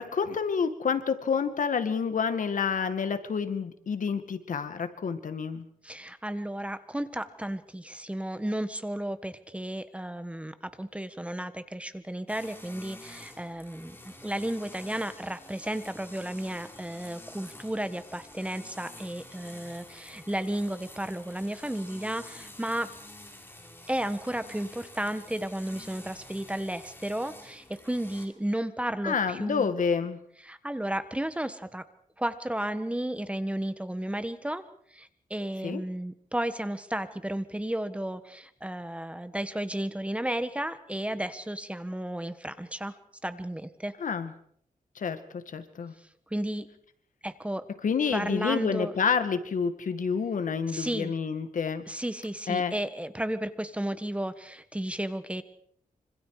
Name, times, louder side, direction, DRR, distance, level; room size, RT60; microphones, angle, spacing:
voice 1, 0.0-5.6 29.0-30.2 35.6-35.8 44.0-44.3 45.0-45.9 47.8-51.8 52.5-52.7, left 6 dB, 70° left, 10 dB, 2.1 m, -29 dB
voice 2, 5.8-22.9 23.9-29.7 30.4-31.8 32.2-34.6 34.9-42.9 43.2-43.9 46.3-46.7 47.2-47.6 48.1-48.9 50.7-51.1 51.9-55.4, right 1 dB, 10° right, 11 dB, 1.5 m, -33 dB
sound 1, 12.3-28.3, left 1 dB, 15° left, 5.2 m, -49 dB
26.0 x 26.0 x 5.0 m, 0.64 s
wide cardioid pair, 100°, 14 cm